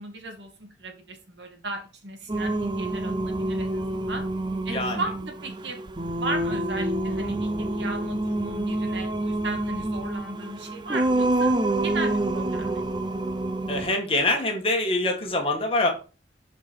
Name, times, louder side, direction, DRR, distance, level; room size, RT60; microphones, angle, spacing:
voice 1, 0.0-4.2 4.6-5.8 6.2-11.5 11.8-12.9, right 2 dB, 80° right, 3 dB, 2.3 m, -36 dB
Singing, 2.3-13.9, right 2 dB, 25° right, 0.5 m, -27 dB
voice 2, 4.7-5.0 13.7-15.9, left 2 dB, 30° left, 2 dB, 2.0 m, -24 dB
9.0 x 5.1 x 4.6 m, 0.34 s
head